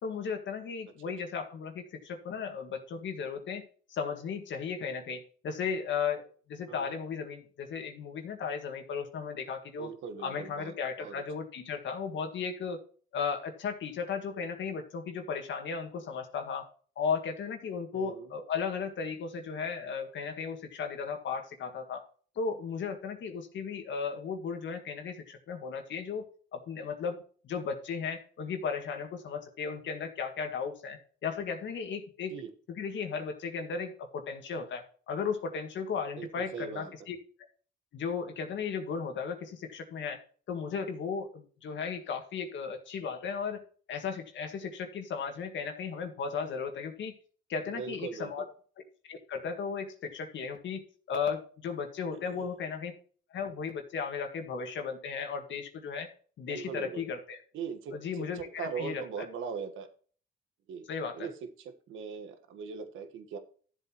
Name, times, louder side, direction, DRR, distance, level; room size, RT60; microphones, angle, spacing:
voice 1, 0.0-3.6 3.9-9.9 10.2-12.8 13.1-16.7 17.0-22.0 22.4-26.3 26.5-27.2 27.4-32.3 32.7-37.2 37.9-40.2 40.5-43.6 43.9-47.2 47.5-48.4 49.1-50.8 51.1-52.9 53.3-56.1 56.4-57.4 57.9-59.3 60.9-61.3, left 6 dB, 70° left, 5 dB, 1.8 m, -35 dB
voice 2, 9.8-10.7 11.0-11.2 17.9-18.3 32.3-32.5 36.2-36.9 47.8-48.3 52.1-52.4 56.5-57.0 57.5-58.0 58.3-59.9 60.7-60.9 61.1-61.3 61.6-63.4, right 6 dB, 85° right, 8 dB, 1.4 m, -40 dB
12.5 x 7.7 x 3.0 m, 0.43 s
cardioid pair, 90°, 20 cm